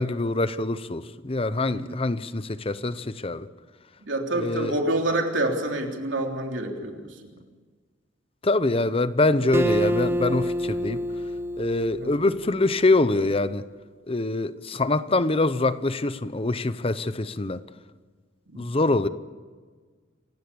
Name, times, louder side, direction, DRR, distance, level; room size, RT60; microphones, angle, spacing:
voice 1, 0.0-3.5 4.3-4.7 8.4-11.0 11.6-13.7 14.1-17.6 18.6-19.1, left 2 dB, 30° left, 0.8 m, -24 dB
voice 2, 4.0-7.3 11.9-12.1 18.5-18.7, right 1 dB, 85° right, 3.4 m, -27 dB
Acoustic guitar, 9.5-12.9, equal, 15° right, 0.8 m, -28 dB
28.0 x 16.0 x 6.9 m
head